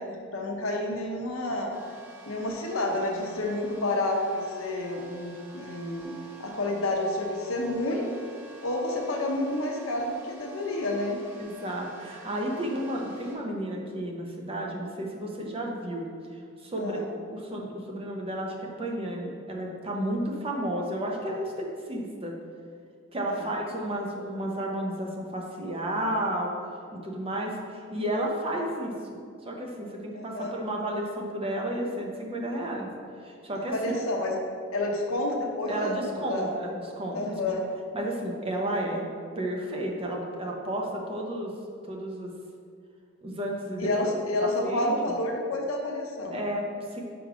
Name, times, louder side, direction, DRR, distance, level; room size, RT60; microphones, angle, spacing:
voice 1, 0.0-1.7 2.3-6.1 6.4-8.1 8.6-11.2 16.8-17.1 23.2-23.5 30.1-30.5 33.5-34.4 34.7-36.5 37.1-37.7 43.8-46.4, left 1 dB, 75° left, 1 dB, 1.0 m, -29 dB
sound 1, 1.7-13.3, right 3 dB, 10° right, 1.3 m, -50 dB
voice 2, 11.4-16.1 16.6-17.0 17.3-22.4 23.1-26.5 26.9-29.2 29.4-32.9 33.2-33.7 35.7-37.5 37.9-39.1 39.3-41.5 41.9-42.3 43.2-44.1 44.4-45.1 46.3-47.0, right 1 dB, 25° right, -1 dB, 0.9 m, -32 dB
5.3 x 4.9 x 5.0 m, 2.2 s
head